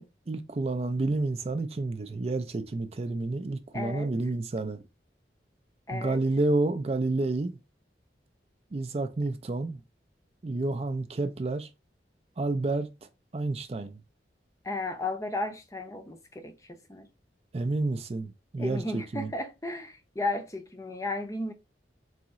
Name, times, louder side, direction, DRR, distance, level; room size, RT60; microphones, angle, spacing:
voice 1, 0.0-4.8 5.9-7.6 8.7-9.8 10.4-11.7 12.4-14.0 17.5-19.3, right 2 dB, 35° right, 0.4 m, -30 dB
voice 2, 3.7-4.1 5.9-6.2 14.6-17.1 18.6-21.5, left 2 dB, 20° left, 0.6 m, -34 dB
4.1 x 2.9 x 3.6 m
head